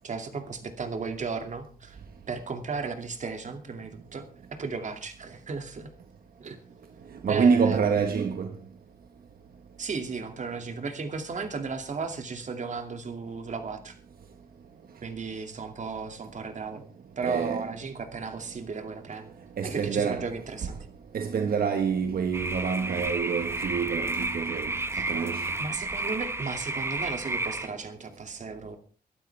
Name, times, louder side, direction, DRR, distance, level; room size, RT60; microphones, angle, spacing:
voice 1, 0.0-2.0 2.3-5.9 6.4-6.6 7.3-7.9 9.8-14.0 15.0-16.8 17.2-19.3 19.6-20.9 24.9-25.1 25.6-28.8, right 4 dB, 50° right, 2.5 m, -35 dB
voice 2, 7.2-8.5 17.2-17.7 19.6-20.2 21.1-24.7 25.1-25.5, right 6 dB, 75° right, 1.5 m, -26 dB
sound 1, 22.3-27.7, right 2 dB, 15° right, 1.3 m, -31 dB
22.5 x 12.0 x 3.5 m
wide cardioid pair, 130°, 16 cm